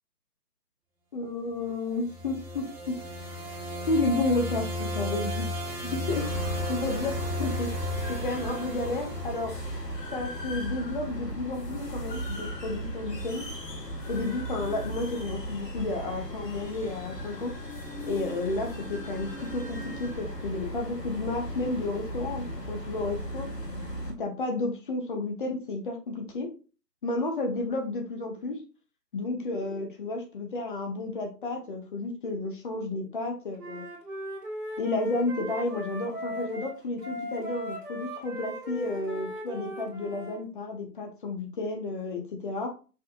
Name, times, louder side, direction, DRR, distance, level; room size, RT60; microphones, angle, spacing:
voice 1, 1.1-3.4 3.8-6.3 6.7-7.1 7.4-7.7 8.1-9.5 10.1-13.5 14.1-17.5 18.0-23.5 24.2-26.5 27.0-28.6 29.1-33.8 34.8-42.7, left 2 dB, 30° left, 2 dB, 0.8 m, -32 dB
sound 1, 1.9-10.0, left 1 dB, 40° right, 2.0 m, -34 dB
sound 2, 6.1-24.1, right 1 dB, 80° left, 1.2 m, -36 dB
Wind instrument woodwind instrument, 33.6-40.4, equal, 75° right, 1.6 m, -38 dB
5.1 x 2.5 x 2.4 m, 0.34 s
figure-of-eight pair, 135°, 48 cm